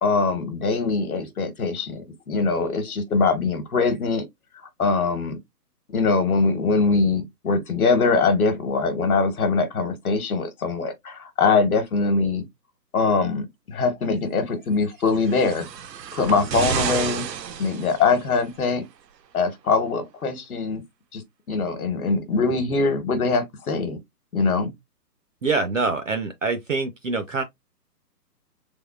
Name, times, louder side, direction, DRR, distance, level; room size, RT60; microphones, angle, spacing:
voice 1, 0.0-4.2 4.8-5.4 5.9-12.4 12.9-15.7 16.1-17.3 17.6-18.8 19.3-20.8 21.1-21.2 21.5-24.0 24.3-24.7, left 4 dB, 60° left, 1.1 m, -22 dB
sound 1, 15.1-18.4 19.4-19.5, right 7 dB, 85° right, 0.7 m, -30 dB
voice 2, 25.4-27.4, right 4 dB, 55° right, 0.5 m, -25 dB
3.5 x 3.4 x 2.3 m
hypercardioid pair, 175°, 49 cm